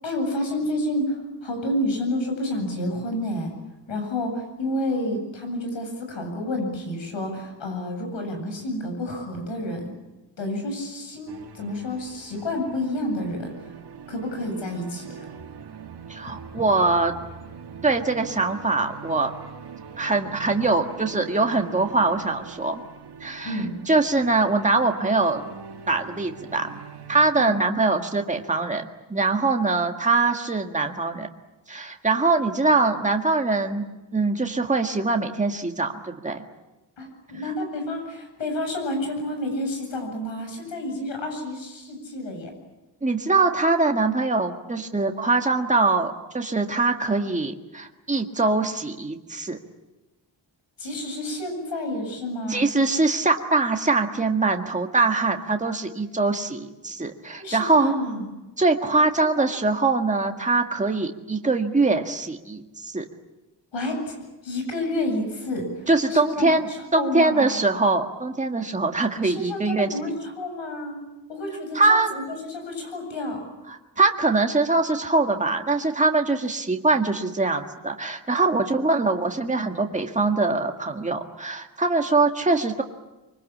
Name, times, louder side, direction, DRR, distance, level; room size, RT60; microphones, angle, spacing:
voice 1, 0.0-3.5 3.9-9.9 10.4-13.7 14.1-15.3 23.4-23.7 27.4-27.5 37.0-42.5 50.8-52.7 57.4-58.3 58.9-59.4 63.7-64.2 64.4-67.6 69.2-71.0 71.3-73.4, left 1 dB, 80° left, 4 dB, 7.9 m, -30 dB
sound 1, 11.3-27.3, right 6 dB, 60° right, 1.9 m, -42 dB
voice 2, 16.1-17.1 17.8-19.3 20.0-22.8 23.2-23.6 23.9-25.4 25.9-26.7 27.1-31.3 31.7-33.9 34.1-36.4 43.0-49.6 52.5-57.9 58.6-63.1 65.9-69.9 71.7-72.1 73.7-82.8, right 3 dB, 15° right, 4 dB, 1.8 m, -23 dB
25.0 x 24.5 x 8.6 m, 1.0 s
wide cardioid pair, 165°, 44 cm